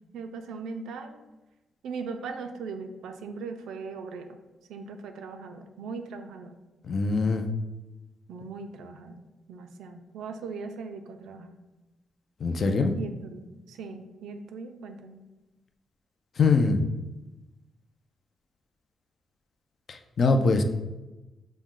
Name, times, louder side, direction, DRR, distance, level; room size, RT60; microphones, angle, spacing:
voice 1, 0.1-1.2 1.8-4.3 4.7-6.6 8.3-11.6 12.6-15.2, right 4 dB, 90° right, 7 dB, 0.4 m, -39 dB
voice 2, 6.8-7.4 12.4-12.9 16.4-16.8 19.9-20.6, left 4 dB, 35° left, 5 dB, 0.3 m, -23 dB
6.0 x 2.1 x 3.7 m, 1.1 s
cardioid pair, 165°, 0 cm